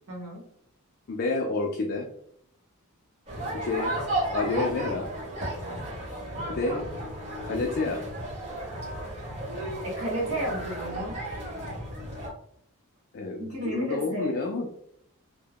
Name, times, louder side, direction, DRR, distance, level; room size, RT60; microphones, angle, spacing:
voice 1, 0.1-0.4 6.3-6.7 9.8-11.7 13.4-14.4, right 1 dB, 70° right, -2 dB, 0.9 m, -33 dB
voice 2, 1.1-2.1 3.5-4.0 4.3-5.1 6.5-6.9 7.4-8.0 13.1-14.7, left 3 dB, 45° left, 1 dB, 0.3 m, -29 dB
sound 1, 3.3-12.3, right 1 dB, 30° right, 1.0 m, -34 dB
3.4 x 2.1 x 2.3 m, 0.71 s
head